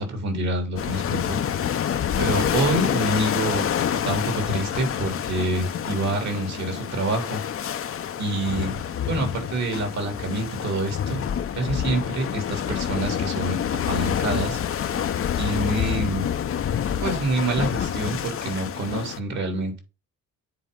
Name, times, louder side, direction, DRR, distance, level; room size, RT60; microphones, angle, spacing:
voice 1, 0.0-1.4 2.2-7.4 8.2-8.8 9.1-11.2 11.6-14.6 15.4-16.3 17.0-19.8, right 2 dB, 65° right, 3.5 m, -27 dB
sound 1, 0.8-19.2, left 9 dB, 45° left, 0.7 m, -27 dB
9.7 x 4.3 x 3.8 m
cardioid pair, 90°, 30 cm